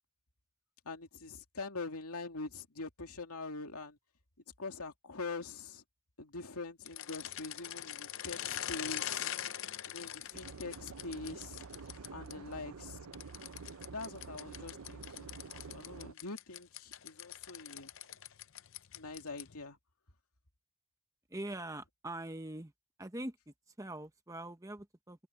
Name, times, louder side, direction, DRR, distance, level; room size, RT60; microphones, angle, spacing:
voice 1, 0.9-4.0 4.6-5.8 6.2-9.3 9.8-11.6 12.1-13.1 13.9-15.3 15.7-17.9 18.9-19.8, left 3 dB, 85° left, 2.6 m, -44 dB
sound 1, 6.8-12.3 13.1-19.6, left 11 dB, 60° left, 0.6 m, -43 dB
sound 2, 10.3-16.1, right 4 dB, 80° right, 0.7 m, -49 dB
voice 2, 21.3-22.7 23.0-25.3, right 1 dB, 15° right, 1.1 m, -43 dB
open air
head